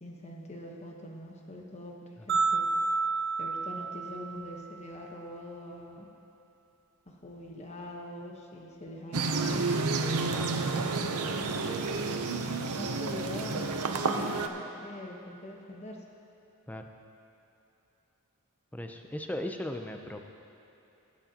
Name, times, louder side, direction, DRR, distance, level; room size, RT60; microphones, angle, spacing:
voice 1, 0.0-1.9 2.3-2.7 3.4-6.0 7.1-12.2 12.8-16.0, left 1 dB, 30° left, 0 dB, 1.1 m, -43 dB
sound 1, 2.3-4.7, right 4 dB, 55° right, 1.0 m, -30 dB
sound 2, 9.1-14.5, right 3 dB, 85° right, 0.7 m, -30 dB
voice 2, 18.7-20.2, left 1 dB, 5° left, 4 dB, 0.5 m, -37 dB
19.0 x 8.1 x 2.9 m, 2.9 s
head